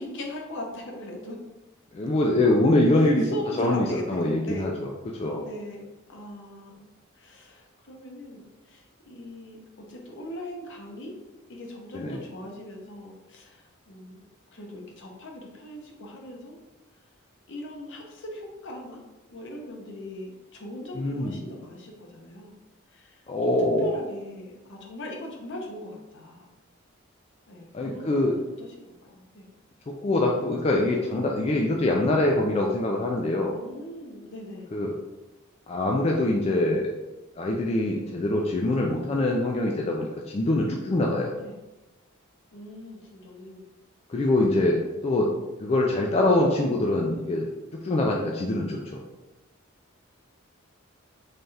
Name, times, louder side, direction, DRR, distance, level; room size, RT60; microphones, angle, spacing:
voice 1, 0.0-1.4 2.9-4.7 5.4-6.9 7.1-9.6 9.9-11.1 11.5-14.2 14.5-16.6 17.5-19.0 19.3-22.6 22.9-26.5 27.5-29.5 33.5-34.7 41.3-41.6 42.5-43.7 48.1-48.3, left 1 dB, 60° left, 1 dB, 0.7 m, -40 dB
voice 2, 1.9-4.9 5.2-5.5 11.9-12.2 20.9-21.4 23.3-24.0 27.7-28.3 29.9-33.6 34.7-34.9 35.7-36.9 37.4-41.3 44.1-45.3 45.6-47.5 47.8-49.0, left 1 dB, 30° left, -1 dB, 0.3 m, -24 dB
3.3 x 2.3 x 4.0 m, 1.1 s
head